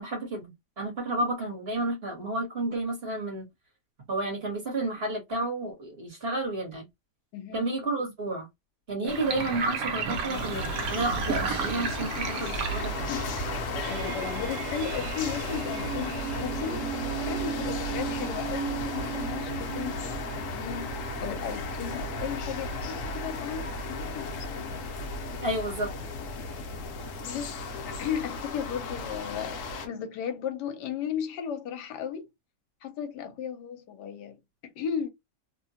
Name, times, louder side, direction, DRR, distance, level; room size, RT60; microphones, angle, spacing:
voice 1, 0.0-3.5 4.1-6.9 7.5-8.5 8.9-13.1 14.0-14.1 25.4-25.9, right 2 dB, 40° right, 1.2 m, -31 dB
voice 2, 7.3-7.7 9.0-9.3 13.1-24.8 27.2-32.3 32.8-35.1, left 8 dB, 80° left, 1.2 m, -36 dB
Sink (filling or washing), 9.1-14.0, right 5 dB, 70° right, 1.0 m, -33 dB
sound 1, 10.3-29.9, left 2 dB, 65° left, 0.9 m, -35 dB
sound 2, 13.5-24.5, right 11 dB, 85° right, 1.2 m, -38 dB
2.9 x 2.2 x 2.7 m
omnidirectional pair, 1.8 m